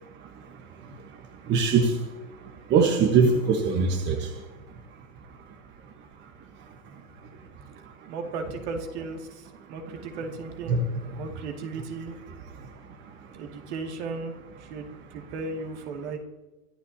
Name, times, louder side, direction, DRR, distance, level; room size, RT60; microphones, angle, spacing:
voice 1, 1.5-1.9 2.7-4.3 10.7-10.8, right 5 dB, 25° right, 4 dB, 1.3 m, -21 dB
voice 2, 8.1-12.2 13.3-16.2, right 3 dB, 55° right, 3 dB, 2.4 m, -36 dB
23.5 x 11.5 x 2.9 m, 1.1 s
hypercardioid pair, 125°, 42 cm